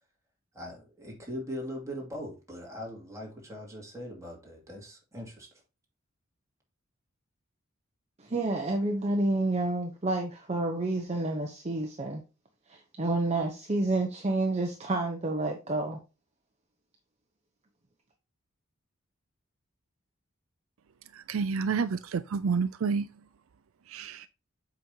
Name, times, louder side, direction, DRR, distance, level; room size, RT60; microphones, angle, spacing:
voice 1, 0.5-5.5, equal, 15° right, 2.5 m, -40 dB
voice 2, 8.2-12.2 12.7-16.0, right 2 dB, 30° right, 0.9 m, -29 dB
voice 3, 21.1-23.1 23.9-24.3, right 5 dB, 75° right, 0.4 m, -29 dB
7.7 x 5.2 x 2.8 m
head